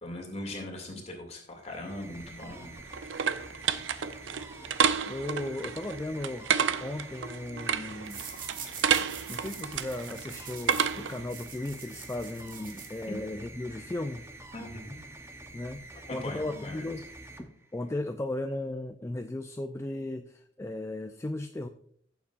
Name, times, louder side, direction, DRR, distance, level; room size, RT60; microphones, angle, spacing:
voice 1, 0.0-2.7 13.1-13.2 14.5-15.0 16.1-16.8, left 1 dB, 35° left, 1 dB, 2.2 m, -40 dB
sound 1, 1.5-18.1, right 2 dB, 15° right, 0.8 m, -47 dB
sound 2, 2.3-11.3, right 7 dB, 75° right, 0.5 m, -31 dB
voice 2, 5.1-6.5 6.8-8.2 9.3-14.2 15.5-15.8 16.1-17.0 17.7-21.7, left 2 dB, 15° left, 6 dB, 0.3 m, -36 dB
sound 3, 8.0-13.4, right 6 dB, 50° right, 1.5 m, -45 dB
14.5 x 7.1 x 2.4 m, 0.63 s
head